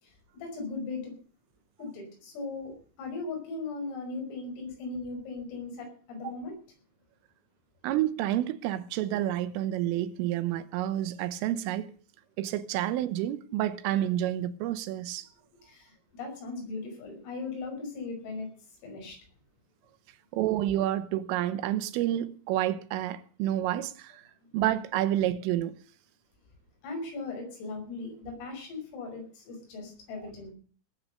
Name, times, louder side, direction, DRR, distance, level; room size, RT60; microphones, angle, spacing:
voice 1, 0.0-1.1 1.8-6.5 15.6-18.5 18.8-19.2 26.8-30.5, left 3 dB, 85° left, 8.2 m, -38 dB
voice 2, 7.8-11.9 12.4-15.3 20.3-24.2 24.5-25.7, right 13 dB, 80° right, 3.4 m, -29 dB
19.0 x 8.8 x 6.6 m
omnidirectional pair, 5.9 m